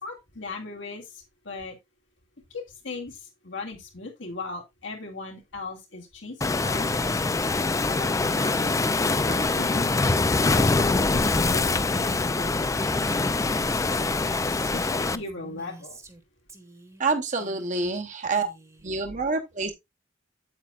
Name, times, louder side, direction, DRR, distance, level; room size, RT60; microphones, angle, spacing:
voice 1, 0.0-1.8 2.5-7.2 7.9-10.0 10.4-16.0, left 3 dB, 75° left, 2.3 m, -38 dB
Waves surf, 6.4-15.2, left 3 dB, 15° left, 0.4 m, -24 dB
Female speech woman speaking, 13.7-16.2 16.5-17.1 17.3-18.0 18.2-18.9, right 2 dB, 15° right, 1.1 m, -48 dB
voice 2, 17.0-18.5 18.8-19.7, right 3 dB, 40° right, 0.9 m, -27 dB
8.5 x 8.2 x 2.4 m
head